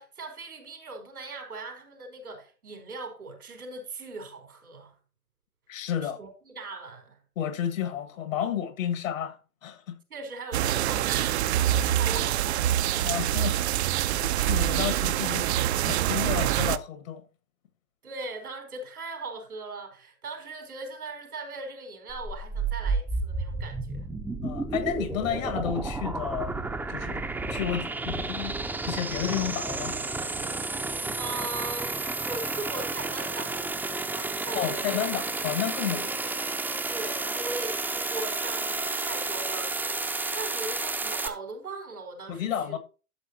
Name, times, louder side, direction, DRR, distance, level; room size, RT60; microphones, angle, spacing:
voice 1, 0.0-5.0 6.0-7.2 10.1-11.4 11.8-12.8 18.0-24.1 31.2-33.7 34.1-35.1 35.9-36.1 36.9-42.8, right 3 dB, 85° right, 4.3 m, -39 dB
voice 2, 5.7-6.2 7.4-10.0 13.0-13.6 14.0-15.5 15.8-17.2 24.4-26.6 26.9-28.6 28.9-30.0 34.6-36.1 42.3-42.8, left 9 dB, 65° left, 1.9 m, -31 dB
sound 1, 10.5-16.8, right 12 dB, 50° right, 0.7 m, -25 dB
sound 2, 22.1-41.3, right 3 dB, 5° right, 0.7 m, -31 dB
12.5 x 7.6 x 2.8 m
hypercardioid pair, 120°, 43 cm